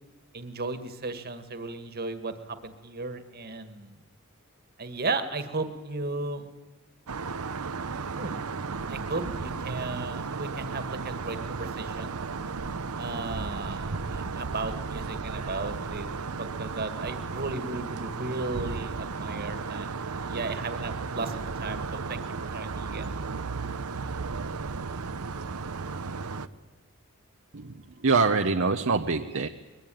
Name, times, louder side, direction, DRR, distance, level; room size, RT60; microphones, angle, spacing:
voice 1, 0.3-4.0 4.8-6.5 8.2-8.4 8.9-12.1 13.0-23.1, right 3 dB, 45° right, 10 dB, 1.9 m, -35 dB
sound 1, 7.1-26.5, right 4 dB, 90° right, 0.9 m, -34 dB
voice 2, 28.0-29.5, right 4 dB, 60° right, 5 dB, 0.9 m, -24 dB
22.0 x 21.5 x 9.2 m, 1.2 s
head